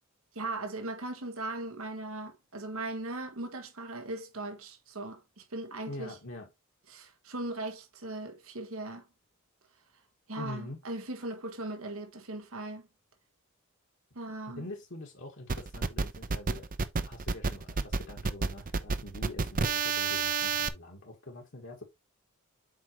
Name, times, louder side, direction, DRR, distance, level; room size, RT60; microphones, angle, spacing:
voice 1, 0.4-6.2 6.9-9.0 10.3-12.8 14.2-14.7, right 2 dB, 85° right, 1.7 m, -38 dB
voice 2, 5.9-6.5 10.4-10.8 14.5-16.7 17.0-21.8, left 1 dB, 60° left, 1.6 m, -44 dB
sound 1, 15.5-20.7, right 4 dB, 40° right, 0.6 m, -30 dB
7.5 x 4.9 x 3.0 m
head